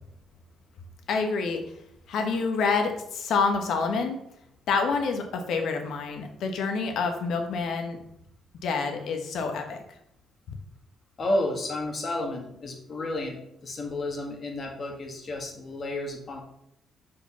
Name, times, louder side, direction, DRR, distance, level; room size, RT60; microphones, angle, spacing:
voice 1, 1.1-1.6 2.1-4.2 4.7-8.0 8.6-9.8, left 4 dB, 75° left, 4 dB, 1.3 m, -27 dB
voice 2, 11.2-16.4, left 1 dB, 45° left, 1 dB, 1.9 m, -31 dB
5.5 x 4.7 x 5.7 m, 0.75 s
cardioid pair, 90°, 0 cm